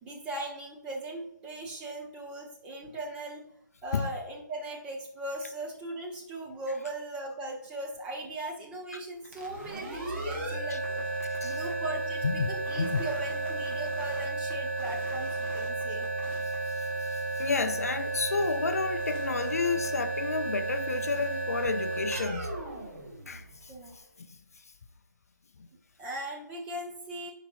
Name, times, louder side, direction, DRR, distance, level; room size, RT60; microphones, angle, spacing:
voice 1, 0.0-3.4 3.8-11.1 11.4-16.1 23.7-24.0 26.0-27.3, right 1 dB, 10° right, 0.9 m, -39 dB
sound 1, 9.2-23.9, right 2 dB, 40° right, 1.6 m, -33 dB
voice 2, 16.8-22.5 23.3-23.7, left 4 dB, 50° left, 0.5 m, -31 dB
8.6 x 4.9 x 2.4 m
figure-of-eight pair, 145°, 10 cm